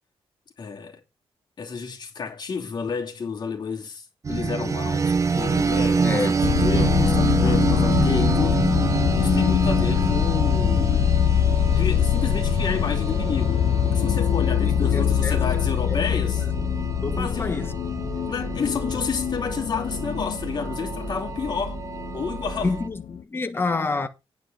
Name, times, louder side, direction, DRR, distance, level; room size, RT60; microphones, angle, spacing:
voice 1, 0.6-1.0 1.6-8.6 9.2-11.1 11.7-16.4 17.2-17.6 18.3-21.8 22.1-22.7, left 5 dB, 45° left, 2.8 m, -30 dB
sound 1, 4.2-22.9, right 5 dB, 30° right, 0.7 m, -27 dB
voice 2, 6.0-6.4 14.6-15.4 15.8-16.7 17.0-17.7 22.6-24.1, left 3 dB, 20° left, 1.5 m, -29 dB
sound 2, 6.4-23.2, left 9 dB, 65° left, 0.6 m, -24 dB
9.8 x 4.7 x 7.9 m
wide cardioid pair, 160°, 10 cm